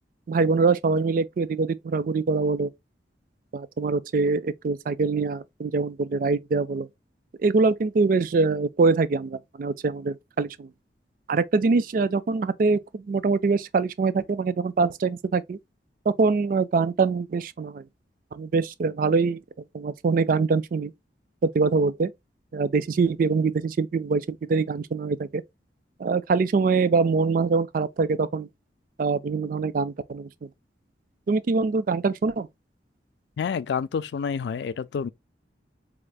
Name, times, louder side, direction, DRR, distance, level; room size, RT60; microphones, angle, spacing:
voice 1, 0.3-2.7 3.5-6.9 7.4-10.7 11.3-15.6 16.1-17.8 18.3-19.4 19.7-20.9 21.4-22.1 22.5-25.4 26.0-28.5 29.0-30.3 31.3-32.5, right 4 dB, 50° right, 0.3 m, -24 dB
voice 2, 33.4-35.1, left 6 dB, 70° left, 0.3 m, -28 dB
3.6 x 3.3 x 2.3 m
head